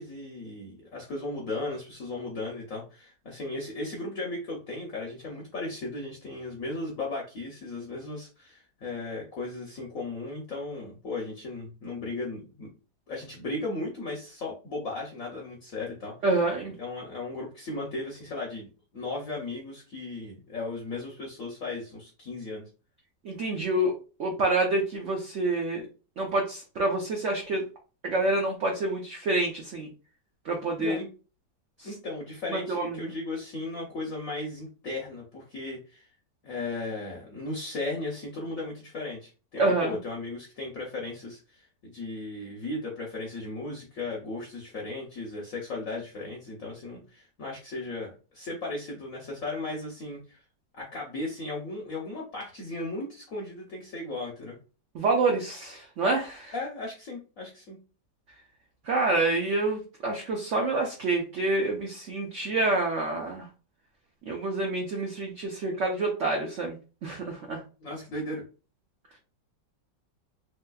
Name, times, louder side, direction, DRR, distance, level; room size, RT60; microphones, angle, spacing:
voice 1, 0.0-12.7 13.1-16.1 16.8-22.7 30.8-31.1 31.8-36.1 36.4-50.4 50.7-54.6 56.5-57.8 67.8-68.4, left 2 dB, 60° left, -1 dB, 1.0 m, -36 dB
voice 2, 16.2-16.8 23.2-23.9 24.2-25.9 26.2-27.7 28.0-29.9 30.4-31.0 31.8-31.9 32.5-33.1 39.6-40.0 54.9-56.5 58.8-63.5 64.3-67.6, right 2 dB, 60° right, 1 dB, 0.7 m, -27 dB
3.2 x 3.2 x 2.3 m, 0.34 s
omnidirectional pair, 2.0 m